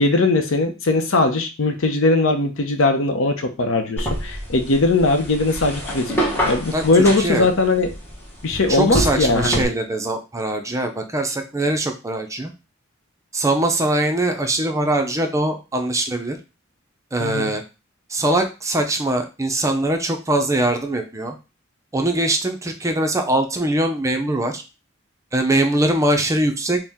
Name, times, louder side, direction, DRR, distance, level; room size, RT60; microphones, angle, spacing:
voice 1, 0.0-7.9 8.4-9.7 17.2-17.5, left 2 dB, 75° left, 6 dB, 0.7 m, -19 dB
sound 1, 4.0-9.6, right 1 dB, 10° left, 0.9 m, -27 dB
voice 2, 8.7-12.5 13.3-16.4 17.1-17.6 18.1-21.4 21.9-24.6 25.3-26.8, right 1 dB, 15° right, 5 dB, 0.5 m, -22 dB
4.3 x 2.1 x 3.5 m, 0.29 s
head